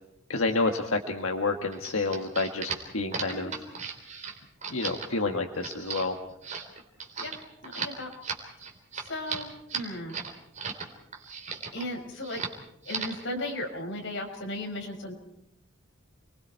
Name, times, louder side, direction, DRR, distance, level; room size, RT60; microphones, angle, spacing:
voice 1, 0.3-3.5 4.7-6.1, left 3 dB, 90° left, 4 dB, 1.6 m, -29 dB
sound 1, 1.7-10.9 11.1-11.9 12.2-12.6 12.8-13.2, right 5 dB, 35° right, 3.6 m, -36 dB
voice 2, 7.6-8.1 9.0-10.2 11.7-12.4 12.8-15.1, left 1 dB, 65° left, 2 dB, 6.0 m, -36 dB
30.0 x 22.5 x 4.6 m, 0.80 s
head